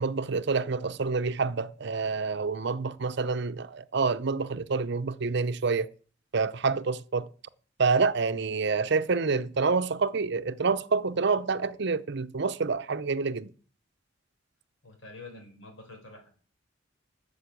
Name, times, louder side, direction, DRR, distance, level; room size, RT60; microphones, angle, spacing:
voice 1, 0.0-5.9 6.3-7.3 7.8-13.5, right 4 dB, 60° right, 0.7 m, -27 dB
voice 2, 14.8-16.3, left 3 dB, 80° left, 4.4 m, -47 dB
12.5 x 6.9 x 8.4 m
head